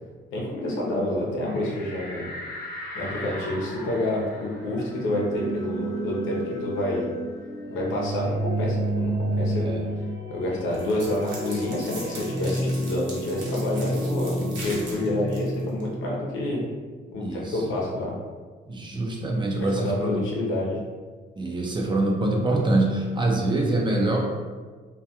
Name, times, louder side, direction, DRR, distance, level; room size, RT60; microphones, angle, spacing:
voice 1, 0.3-2.3 2.9-7.0 7.7-9.8 10.3-16.6 17.1-18.1 19.6-20.8, left 1 dB, 85° left, -3 dB, 0.7 m, -28 dB
sound 1, 1.4-6.6 7.0-7.1 7.4-9.1, left 1 dB, 50° left, 0.8 m, -40 dB
sound 2, 4.5-16.4, right 1 dB, 20° left, 0.6 m, -30 dB
sound 3, 10.7-15.8, right 2 dB, 70° right, 0.8 m, -41 dB
voice 2, 17.1-17.6 18.7-20.3 21.4-24.2, right 2 dB, 25° right, -1 dB, 0.5 m, -25 dB
2.3 x 2.2 x 2.7 m, 1.4 s
cardioid pair, 90°, 20 cm